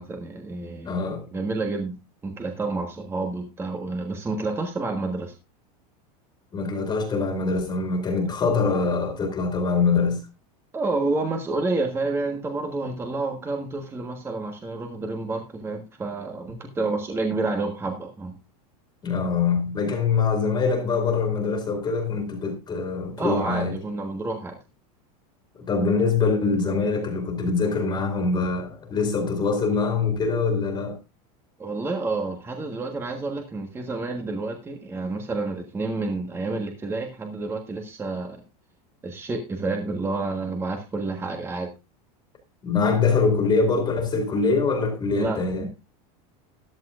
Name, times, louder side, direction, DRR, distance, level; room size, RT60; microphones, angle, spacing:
voice 1, 0.0-1.1 1.3-2.0 2.2-5.3 8.2-8.3 10.7-18.4 23.2-24.6 31.6-38.4 39.0-41.7 45.2-45.7, right 3 dB, 10° right, 1.5 m, -29 dB
voice 2, 0.9-1.3 6.5-10.2 19.0-23.7 25.6-31.0 42.6-45.7, left 4 dB, 20° left, 2.5 m, -24 dB
14.5 x 11.0 x 2.5 m
supercardioid pair, 155°, 20 cm